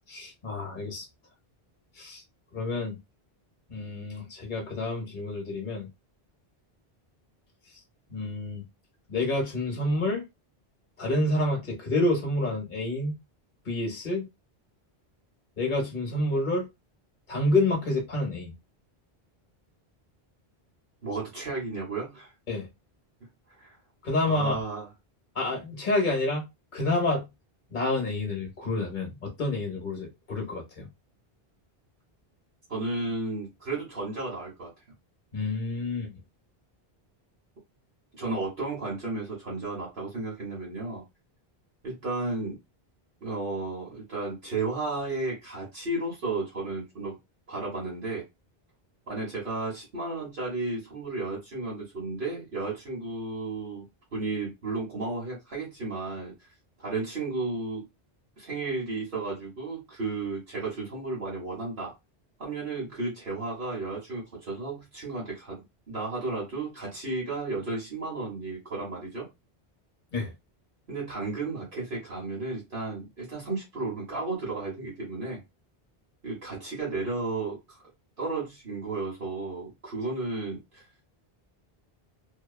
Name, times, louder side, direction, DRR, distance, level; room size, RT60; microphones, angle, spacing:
voice 1, 0.1-1.1 2.0-2.2 2.5-3.0 3.7-5.9 8.1-8.6 9.1-10.2 11.0-13.2 13.7-14.3 15.6-16.7 17.3-18.5 22.5-22.7 24.0-24.6 25.3-26.4 26.7-27.3 27.7-30.9 35.3-36.1 70.1-70.3, left 2 dB, 50° left, 1.0 m, -28 dB
voice 2, 21.0-22.3 23.6-23.8 24.2-24.9 32.7-34.7 38.2-41.0 41.8-42.6 43.2-47.2 47.5-48.3 49.1-53.8 54.1-56.3 56.8-57.8 58.4-61.9 62.4-69.3 70.9-75.4 76.2-77.8 78.2-80.8, right 3 dB, 55° right, 1.2 m, -33 dB
2.8 x 2.2 x 2.3 m
omnidirectional pair, 1.1 m